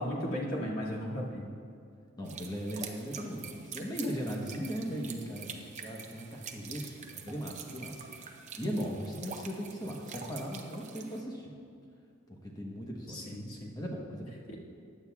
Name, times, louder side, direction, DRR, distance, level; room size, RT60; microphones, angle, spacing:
voice 1, 0.0-1.5 13.1-13.7, equal, 80° left, -5 dB, 2.1 m, -35 dB
voice 2, 2.2-8.0 8.6-11.5 12.3-13.3 13.7-14.4, equal, 20° left, -1 dB, 1.0 m, -38 dB
sound 1, 2.2-11.2, right 6 dB, 35° right, 0.7 m, -46 dB
15.5 x 9.8 x 2.4 m, 2.4 s
head